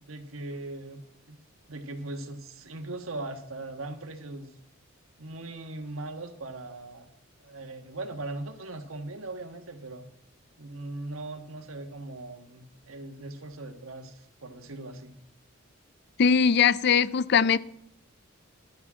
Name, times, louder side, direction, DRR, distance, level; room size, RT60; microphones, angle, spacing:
voice 1, 0.1-1.0 1.3-1.4 1.7-4.5 5.2-7.1 7.4-10.1 10.6-15.2, right 2 dB, 85° right, 1.4 m, -39 dB
voice 2, 16.2-17.6, left 6 dB, 55° left, 0.4 m, -21 dB
11.5 x 6.1 x 7.4 m
head